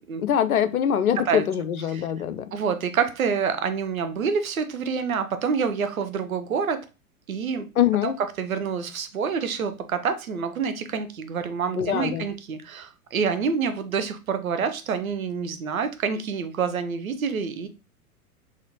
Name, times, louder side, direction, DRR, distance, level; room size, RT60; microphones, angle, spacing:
voice 1, 0.2-2.5 7.8-8.1 11.8-12.2, left 9 dB, 70° left, 0.6 m, -23 dB
voice 2, 2.5-6.9 7.3-7.7 8.0-17.7, right 6 dB, 70° right, 0.8 m, -27 dB
4.0 x 2.9 x 2.8 m
figure-of-eight pair, 100°, 44 cm